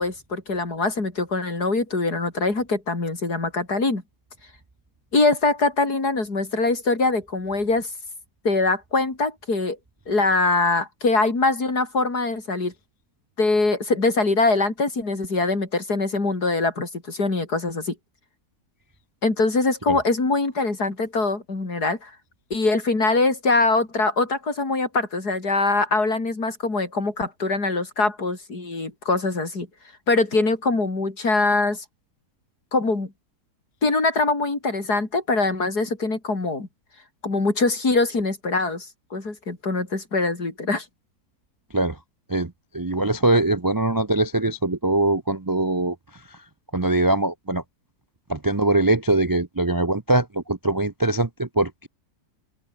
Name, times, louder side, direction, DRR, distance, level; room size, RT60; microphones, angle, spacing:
voice 1, 0.0-4.0 5.1-7.9 8.5-9.8 10.1-12.7 13.4-18.0 19.2-22.1 22.5-29.7 30.1-31.9 32.7-33.1 33.8-36.7 37.2-38.9 39.1-40.9, left 3 dB, 70° left, 5.2 m, -23 dB
voice 2, 42.3-45.9 46.7-47.6 48.3-51.9, right 2 dB, 30° right, 0.3 m, -22 dB
open air
omnidirectional pair, 1.7 m